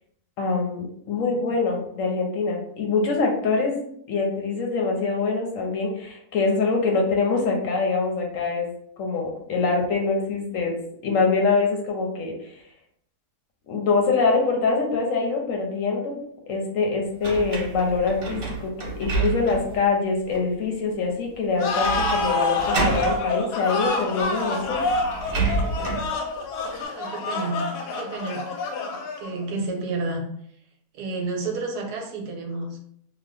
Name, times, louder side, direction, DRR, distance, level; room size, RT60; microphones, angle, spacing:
voice 1, 0.4-3.8 4.1-8.7 9.0-10.8 11.0-12.6 13.7-16.2 16.5-24.8, left 4 dB, 65° left, 1 dB, 0.9 m, -24 dB
voice 2, 1.1-1.4 26.9-28.5 29.2-30.3 30.9-32.8, right 3 dB, 80° right, 2 dB, 1.2 m, -31 dB
sound 1, 17.2-19.8 20.3-20.4 21.8-22.3 22.5-23.2 24.2-24.3 24.6-26.1, right 3 dB, 55° right, 1.0 m, -28 dB
sound 2, 21.6-29.4, left 3 dB, 85° left, 1.2 m, -27 dB
2.9 x 2.2 x 3.3 m, 0.69 s
omnidirectional pair, 1.7 m